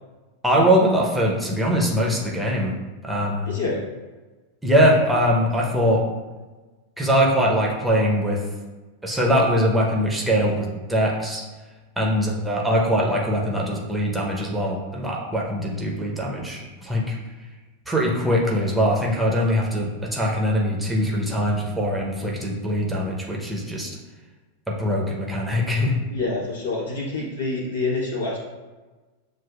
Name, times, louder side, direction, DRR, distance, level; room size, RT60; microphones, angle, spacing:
voice 1, 0.4-2.8 3.0-3.5 4.6-6.0 7.0-8.4 9.0-11.4 12.0-17.2 17.9-24.0 24.7-25.9, equal, 5° right, -2 dB, 0.8 m, -22 dB
voice 2, 3.4-3.8 26.1-28.4, left 3 dB, 70° left, -4 dB, 1.4 m, -27 dB
7.4 x 2.5 x 2.4 m, 1.2 s
figure-of-eight pair, 90°, 0 cm